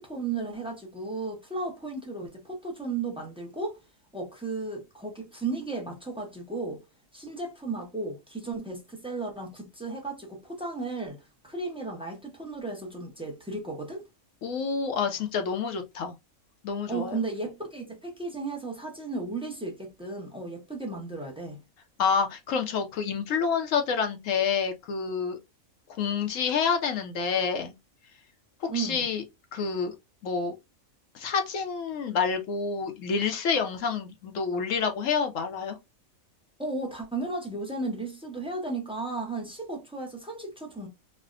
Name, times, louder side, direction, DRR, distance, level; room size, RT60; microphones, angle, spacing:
voice 1, 0.0-3.8 4.1-6.8 7.1-14.0 16.9-21.6 28.7-29.1 36.6-40.9, right 3 dB, 5° right, 0.4 m, -34 dB
voice 2, 14.4-16.1 16.6-17.2 22.0-25.4 25.9-27.7 28.6-29.2 29.5-29.9 30.2-30.5 31.1-35.8, left 6 dB, 70° left, 0.9 m, -28 dB
3.3 x 2.1 x 2.4 m
omnidirectional pair, 1.5 m